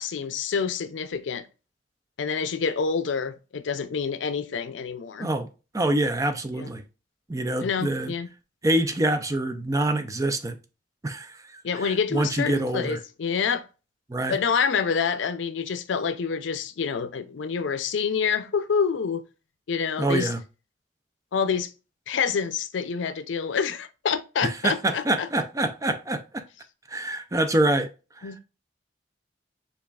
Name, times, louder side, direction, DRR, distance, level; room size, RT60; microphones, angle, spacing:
voice 1, 0.0-1.5 2.2-5.3 6.5-6.7 7.6-8.3 11.6-13.7 14.3-19.2 19.7-20.3 21.3-21.7 22.1-25.3 28.2-28.4, left 6 dB, 90° left, 0.5 m, -27 dB
voice 2, 5.7-6.8 7.3-8.1 8.6-10.6 11.0-13.0 14.1-14.4 20.0-20.4 24.4-26.4 26.9-27.9 28.2-28.3, right 1 dB, 20° right, 0.4 m, -26 dB
6.9 x 2.4 x 2.3 m
head